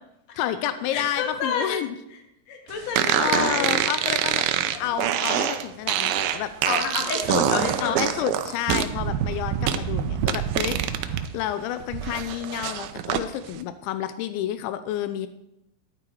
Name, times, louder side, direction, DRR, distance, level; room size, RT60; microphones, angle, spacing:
voice 1, 0.3-2.0 3.1-4.5 4.8-6.5 7.8-10.8 11.3-15.3, left 11 dB, 85° left, 11 dB, 3.0 m, -29 dB
voice 2, 0.9-1.8 2.1-2.2 2.5-4.0 4.7-5.0 6.7-8.0, left 5 dB, 45° left, 3 dB, 2.6 m, -29 dB
sound 1, 3.0-11.3 11.6-13.2, right 10 dB, 80° right, 2.2 m, -25 dB
13.5 x 11.0 x 4.6 m, 0.84 s
omnidirectional pair, 5.2 m